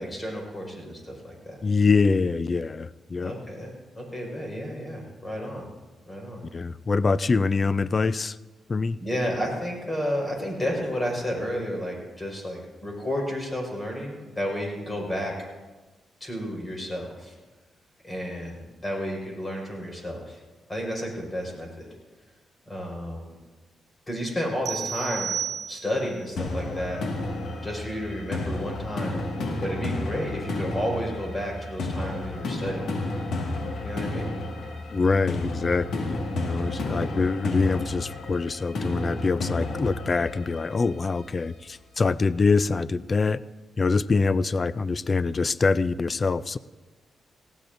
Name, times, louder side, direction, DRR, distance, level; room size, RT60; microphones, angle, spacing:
voice 1, 0.0-1.6 3.2-5.6 6.1-6.4 9.0-15.3 16.2-17.4 18.0-20.4 20.7-21.9 22.7-23.3 24.1-25.3 25.7-27.0 27.6-29.3 29.6-32.8 33.8-34.3, equal, 20° left, -1 dB, 5.0 m, -32 dB
voice 2, 1.6-3.3 6.5-8.4 8.7-9.0 34.9-43.4 43.8-46.6, left 4 dB, 35° left, 17 dB, 0.3 m, -24 dB
sound 1, 24.7-26.2, right 8 dB, 65° right, 0.4 m, -32 dB
sound 2, 26.4-41.3, left 2 dB, 75° left, 2.0 m, -32 dB
18.5 x 16.5 x 2.6 m, 1.2 s
cardioid pair, 95°, 0 cm